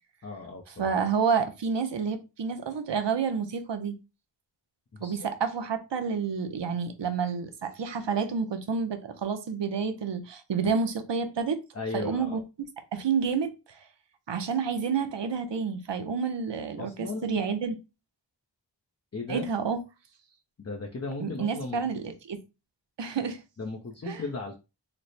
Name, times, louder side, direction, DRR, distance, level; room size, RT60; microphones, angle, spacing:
voice 1, 0.2-0.9 4.9-5.3 11.7-12.4 16.8-17.3 19.1-19.5 20.6-21.8 23.6-24.6, left 3 dB, 35° left, 0.6 m, -36 dB
voice 2, 0.8-4.0 5.0-11.6 11.9-12.4 12.9-13.5 14.3-17.7 19.3-19.8 21.2-22.4 23.0-23.4 24.1-24.2, right 6 dB, 75° right, 0.7 m, -29 dB
3.2 x 2.0 x 4.0 m
wide cardioid pair, 45°, 43 cm